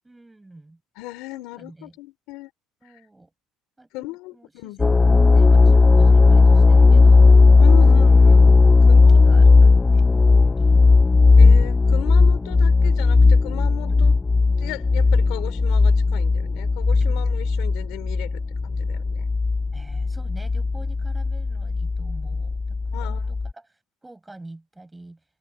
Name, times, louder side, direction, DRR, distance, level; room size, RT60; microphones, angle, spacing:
voice 1, 0.0-0.8 1.3-1.9 2.8-3.3 3.8-7.2 8.9-10.1 10.5-11.0 13.9-14.1 16.9-17.2 19.7-25.2, right 2 dB, 10° right, 5.7 m, -46 dB
voice 2, 1.0-2.5 2.9-3.0 3.9-4.8 7.6-8.5 8.9-9.4 11.4-14.1 14.6-19.3 22.9-23.3, left 20 dB, 75° left, 5.3 m, -36 dB
sound 1, 4.8-23.5, left 3 dB, 15° left, 0.5 m, -15 dB
open air
cardioid pair, 155°, 0 cm